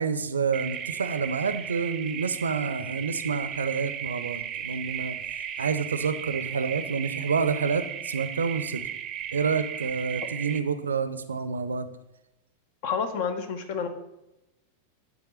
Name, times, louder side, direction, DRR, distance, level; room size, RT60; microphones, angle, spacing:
voice 1, 0.0-5.2 5.6-8.8 9.3-11.9, right 5 dB, 70° right, 11 dB, 0.5 m, -28 dB
sound 1, 0.5-10.6, right 9 dB, 30° right, 0.6 m, -35 dB
voice 2, 12.8-13.9, left 6 dB, 50° left, 9 dB, 0.8 m, -29 dB
8.9 x 3.5 x 5.7 m, 0.93 s
figure-of-eight pair, 90°, 0 cm